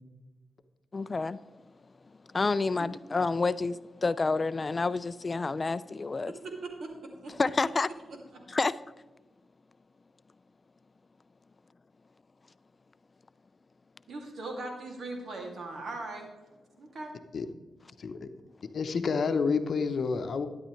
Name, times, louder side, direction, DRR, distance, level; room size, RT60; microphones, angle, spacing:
voice 1, 0.9-1.4 2.3-6.3 7.4-7.9 8.5-8.8, left 3 dB, 35° left, 17 dB, 0.3 m, -29 dB
voice 2, 6.3-7.3 14.1-16.3 16.8-17.1, right 2 dB, 70° right, 1 dB, 2.4 m, -39 dB
voice 3, 18.0-18.3 18.7-20.5, left 5 dB, 60° left, 9 dB, 0.8 m, -29 dB
12.5 x 10.5 x 3.2 m, 1.2 s
cardioid pair, 65°, 0 cm